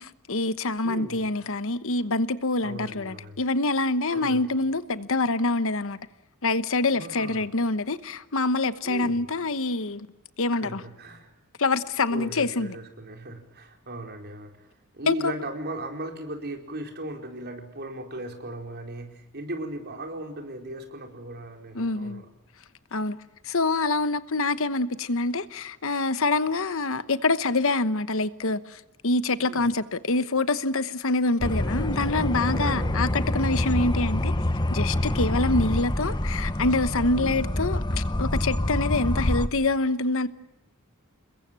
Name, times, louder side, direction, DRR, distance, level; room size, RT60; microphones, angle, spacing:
voice 1, 0.0-6.0 6.4-10.1 10.4-10.8 11.6-12.7 15.1-15.3 21.7-22.2 22.9-23.2 23.4-34.3 34.7-40.3, left 3 dB, 60° left, 1.1 m, -26 dB
voice 2, 0.8-1.3 2.6-3.4 4.1-4.4 6.9-7.4 8.8-9.2 10.5-11.3 12.1-14.5 14.9-22.2 29.4-29.7 32.5-33.2 37.2-37.5, right 1 dB, 45° right, 4.7 m, -37 dB
sound 1, 31.4-39.5, left 1 dB, 20° left, 1.0 m, -26 dB
28.5 x 22.0 x 7.6 m
head